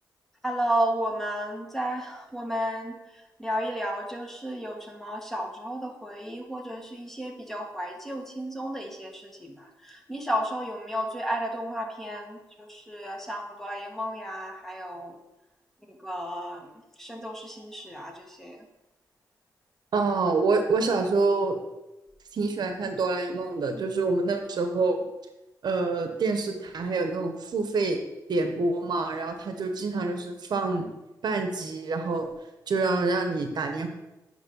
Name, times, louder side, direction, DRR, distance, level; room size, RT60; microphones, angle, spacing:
voice 1, 0.4-3.0 3.4-15.1 15.9-16.7 17.0-18.6, equal, 5° left, 2 dB, 1.3 m, -33 dB
voice 2, 19.9-21.6 22.3-25.0 25.6-28.0 28.3-30.9 31.2-32.3 32.7-33.9, right 3 dB, 70° right, 5 dB, 0.9 m, -26 dB
9.1 x 3.4 x 5.4 m, 0.99 s
cardioid pair, 80°, 8 cm